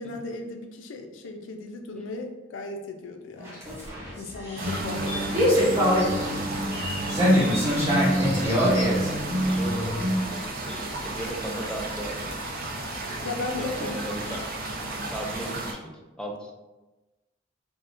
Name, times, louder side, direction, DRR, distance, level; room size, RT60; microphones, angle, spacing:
voice 1, 0.0-3.6 4.2-6.9 13.0-13.9, left 3 dB, 80° left, 4 dB, 0.4 m, -36 dB
sound 1, 3.4-10.2, equal, 15° right, 0.8 m, -24 dB
sound 2, 4.6-15.7, right 2 dB, 50° right, 0.5 m, -34 dB
voice 2, 8.0-10.0 10.6-12.3 13.4-14.4 15.1-15.9 16.2-16.5, right 1 dB, 5° left, -1 dB, 0.3 m, -36 dB
3.5 x 2.0 x 2.5 m, 1.1 s
head